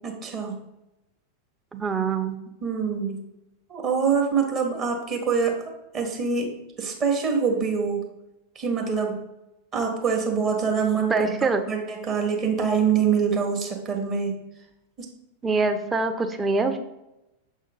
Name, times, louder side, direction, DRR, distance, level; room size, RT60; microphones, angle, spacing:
voice 1, 0.0-0.6 2.6-3.2 3.7-5.6 5.9-6.5 6.8-8.0 8.5-9.2 9.7-14.3 15.0-15.1, right 6 dB, 30° right, 2 dB, 1.5 m, -25 dB
voice 2, 1.7-2.4 11.1-11.6 15.4-16.8, right 4 dB, 15° right, 6 dB, 0.7 m, -24 dB
6.9 x 3.7 x 5.3 m, 0.92 s
figure-of-eight pair, 90°, 0 cm